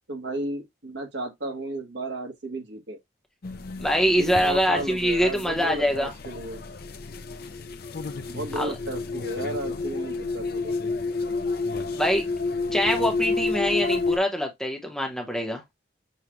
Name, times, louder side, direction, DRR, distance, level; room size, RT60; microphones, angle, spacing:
voice 1, 0.0-3.0 4.2-6.6 8.3-10.7, right 1 dB, 65° right, 1.3 m, -34 dB
sound 1, 3.4-14.2, left 3 dB, 50° left, 0.5 m, -30 dB
voice 2, 3.8-6.1 8.6-8.7 12.0-12.2 12.7-15.6, equal, 5° left, 0.9 m, -24 dB
6.8 x 2.4 x 3.0 m
head